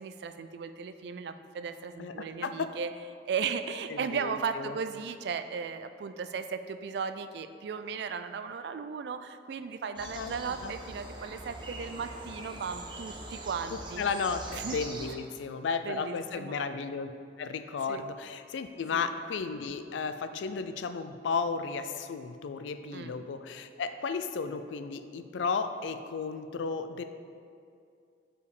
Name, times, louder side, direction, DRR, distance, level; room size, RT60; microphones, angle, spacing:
voice 1, 0.0-2.9 3.3-14.0 14.6-14.8 15.8-16.5 17.9-18.0 18.9-19.1 22.9-23.1, right 6 dB, 65° right, 10 dB, 0.3 m, -36 dB
voice 2, 2.0-2.7 3.9-4.8 10.0-10.3 10.6-10.7 13.7-17.1 17.4-27.0, left 5 dB, 85° left, 9 dB, 0.4 m, -34 dB
sound 1, 10.0-15.1, right 2 dB, 25° right, 0.7 m, -43 dB
5.1 x 4.7 x 4.8 m, 2.3 s
head